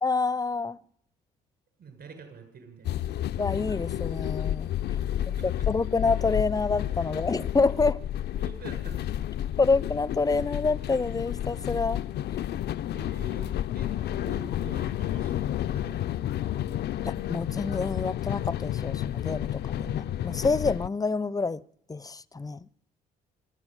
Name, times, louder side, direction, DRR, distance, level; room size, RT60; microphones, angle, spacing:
voice 1, 0.0-0.8 3.4-4.7 5.4-8.0 9.6-12.0 17.0-21.6 21.9-22.7, left 4 dB, 20° left, 0.8 m, -27 dB
voice 2, 1.8-3.0 5.0-5.5 7.1-7.2 8.4-9.3 12.9-16.7, right 5 dB, 55° right, 7.1 m, -47 dB
sound 1, 2.8-20.9, left 11 dB, 60° left, 0.7 m, -31 dB
25.0 x 11.0 x 9.3 m
hypercardioid pair, 55°, 19 cm